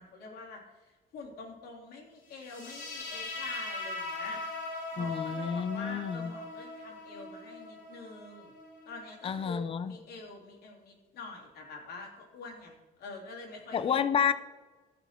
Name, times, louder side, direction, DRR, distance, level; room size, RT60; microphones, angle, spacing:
voice 1, 0.0-4.4 4.9-8.5 8.9-14.0, left 3 dB, 65° left, -1 dB, 3.2 m, -46 dB
sound 1, 2.4-9.4, left 2 dB, 50° left, 2.9 m, -40 dB
voice 2, 5.0-6.3 9.2-10.0 13.7-14.3, left 7 dB, 35° left, 12 dB, 0.6 m, -30 dB
14.5 x 5.0 x 4.4 m, 1.2 s
cardioid pair, 110°, 17 cm